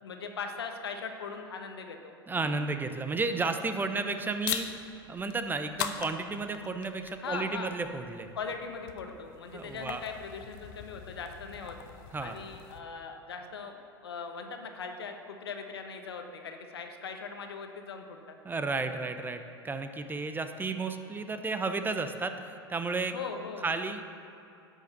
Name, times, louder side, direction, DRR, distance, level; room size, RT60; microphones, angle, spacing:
voice 1, 0.0-2.1 7.2-7.7 8.3-11.8 12.2-13.8 14.0-18.4 23.1-23.7, left 5 dB, 75° left, 5 dB, 1.2 m, -40 dB
voice 2, 2.3-4.7 5.1-8.3 9.5-10.0 12.1-12.4 18.4-23.1 23.6-24.0, right 3 dB, 15° right, 8 dB, 0.8 m, -32 dB
sound 1, 4.4-12.8, left 10 dB, 55° left, 0.8 m, -41 dB
11.0 x 6.9 x 6.7 m, 2.8 s
hypercardioid pair, 90°, 13 cm